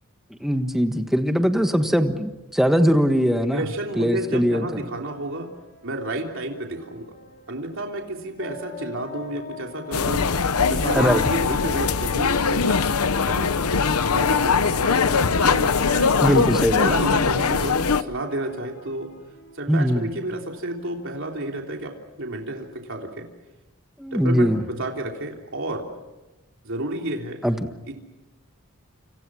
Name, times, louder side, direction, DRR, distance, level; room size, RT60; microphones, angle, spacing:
voice 1, 0.4-3.6 4.0-4.7 10.9-11.2 16.2-17.0 19.7-20.1 24.0-24.6 27.4-27.7, equal, ahead, 7 dB, 1.5 m, -21 dB
voice 2, 3.4-5.5 5.8-7.1 7.5-10.3 10.7-12.8 13.3-13.6 14.1-16.4 16.7-19.1 19.6-23.3 24.1-25.9 26.6-27.4 27.9-28.0, right 1 dB, 60° right, 1 dB, 3.4 m, -31 dB
sound 1, 4.0-21.5, left 6 dB, 45° left, 4.9 m, -41 dB
sound 2, 9.9-18.0, left 5 dB, 80° left, 0.9 m, -21 dB
29.0 x 27.0 x 6.3 m, 1.0 s
head